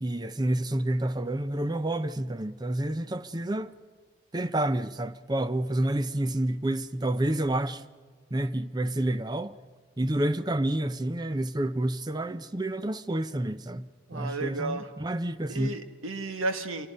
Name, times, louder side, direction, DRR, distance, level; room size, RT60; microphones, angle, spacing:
voice 1, 0.0-3.7 4.3-7.8 8.3-9.6 10.0-15.7, right 1 dB, 20° right, 0.6 m, -29 dB
voice 2, 14.1-14.9 15.5-16.9, right 2 dB, 80° right, 1.6 m, -33 dB
26.0 x 24.0 x 5.4 m
head